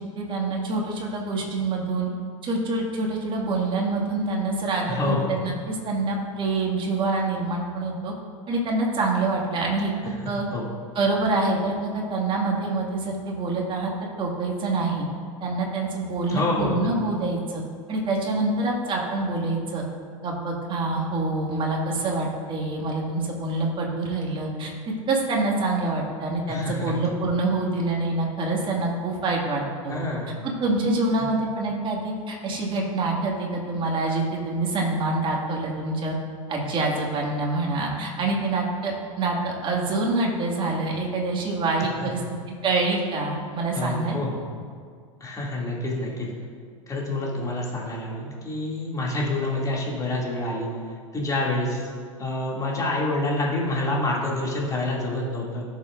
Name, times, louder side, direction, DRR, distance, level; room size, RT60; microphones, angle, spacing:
voice 1, 0.2-2.1 2.4-8.1 8.5-9.9 10.3-10.4 10.9-13.9 14.2-15.1 15.4-17.6 17.9-19.8 20.2-24.7 25.1-30.1 30.4-36.2 36.5-42.2 42.6-44.2, right 2 dB, 30° right, -1 dB, 2.2 m, -26 dB
voice 2, 4.9-5.3 10.5-10.6 16.3-16.9 26.5-27.1 29.9-30.3 31.2-31.3 42.0-42.1 43.7-44.4 45.2-46.3 46.9-50.7 51.1-51.9 52.2-55.6, left 2 dB, 20° left, -4 dB, 2.7 m, -27 dB
17.0 x 7.2 x 2.6 m, 2.1 s
figure-of-eight pair, 85°, 17 cm